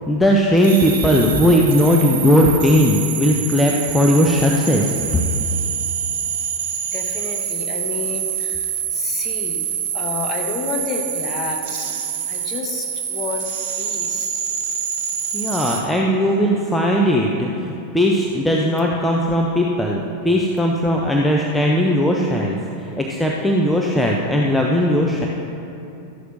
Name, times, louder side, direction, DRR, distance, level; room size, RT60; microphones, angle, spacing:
voice 1, 0.1-4.9 15.3-22.6 23.0-25.3, equal, 5° left, -1 dB, 0.7 m, -18 dB
sound 1, 0.6-15.8, right 8 dB, 50° right, 1.1 m, -26 dB
voice 2, 6.9-9.6 9.9-12.0 12.3-13.5 13.8-14.4, left 5 dB, 25° left, 1 dB, 1.2 m, -30 dB
13.0 x 11.0 x 2.7 m, 2.9 s
figure-of-eight pair, 90°, 0 cm